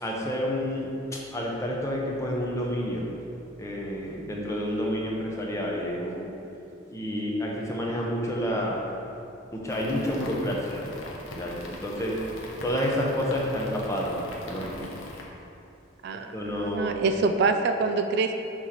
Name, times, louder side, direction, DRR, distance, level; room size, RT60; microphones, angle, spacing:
voice 1, 0.0-3.1 3.6-6.3 6.9-8.9 9.5-11.0 11.3-12.2 12.6-14.2 14.5-14.9 16.3-17.0, equal, 15° left, -2 dB, 0.8 m, -29 dB
sound 1, 9.7-15.2, left 2 dB, 85° left, 0.9 m, -42 dB
voice 2, 16.0-18.3, right 4 dB, 60° right, 7 dB, 0.3 m, -26 dB
6.2 x 3.2 x 5.7 m, 2.7 s
head